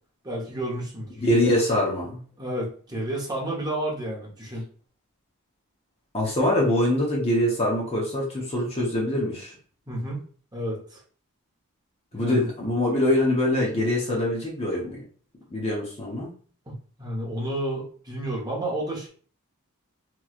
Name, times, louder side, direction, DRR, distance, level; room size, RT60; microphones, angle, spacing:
voice 1, 0.2-1.1 2.4-4.7 9.9-10.2 10.5-11.0 12.1-12.5 16.7-19.1, right 1 dB, 15° right, -3 dB, 0.9 m, -31 dB
voice 2, 1.2-2.2 6.1-9.5 12.1-15.0 15.5-16.3, left 1 dB, 25° left, -3 dB, 0.8 m, -24 dB
3.0 x 3.0 x 2.4 m, 0.43 s
head